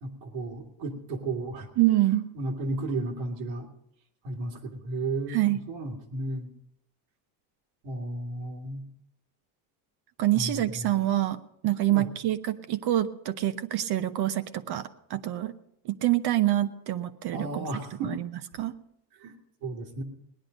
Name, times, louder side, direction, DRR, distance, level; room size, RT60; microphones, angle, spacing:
voice 1, 0.0-1.7 2.4-3.7 4.2-6.5 7.8-8.8 10.3-10.9 11.9-12.1 17.3-18.2 19.2-19.4 19.6-20.0, right 2 dB, 85° right, -1 dB, 2.4 m, -34 dB
voice 2, 1.8-2.3 5.3-5.6 10.2-15.5 15.8-17.7 18.0-18.3 18.5-18.7, right 14 dB, 50° right, 11 dB, 0.8 m, -26 dB
18.5 x 10.5 x 5.2 m, 0.77 s
cardioid pair, 120°, 50 cm